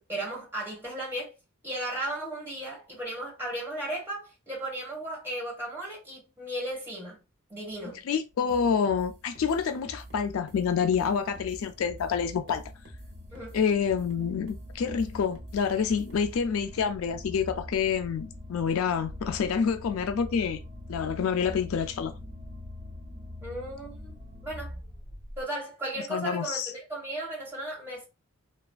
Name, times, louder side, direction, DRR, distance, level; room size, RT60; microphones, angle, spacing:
voice 1, 0.1-1.3 1.6-7.2 7.5-8.0 13.3-13.6 23.4-24.1 24.4-24.7 25.4-28.1, right 1 dB, 10° right, 1.7 m, -35 dB
sound 1, 7.9-25.4, left 1 dB, 30° right, 1.0 m, -45 dB
voice 2, 8.1-12.6 13.5-20.6 20.9-22.1 26.1-26.7, left 6 dB, 70° left, 0.3 m, -27 dB
sound 2, 8.5-16.4, right 1 dB, 70° right, 0.7 m, -46 dB
3.2 x 2.3 x 2.3 m
head